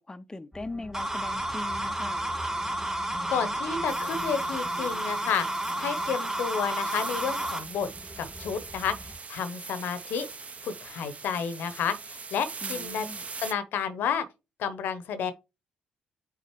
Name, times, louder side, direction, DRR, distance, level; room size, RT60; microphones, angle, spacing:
voice 1, 0.0-2.3 12.6-13.3, left 2 dB, 15° left, 0.5 m, -40 dB
sound 1, 0.5-9.2, equal, ahead, 1.1 m, -46 dB
sound 2, 0.9-7.6, right 1 dB, 15° right, 1.9 m, -31 dB
voice 2, 3.3-5.5 5.8-7.9 8.2-8.9 9.3-10.3 10.6-13.1 13.4-14.2 14.6-15.3, left 7 dB, 70° left, 0.8 m, -31 dB
sound 3, 3.9-13.5, right 4 dB, 40° right, 0.7 m, -42 dB
8.1 x 3.9 x 3.0 m
hypercardioid pair, 50°, 4 cm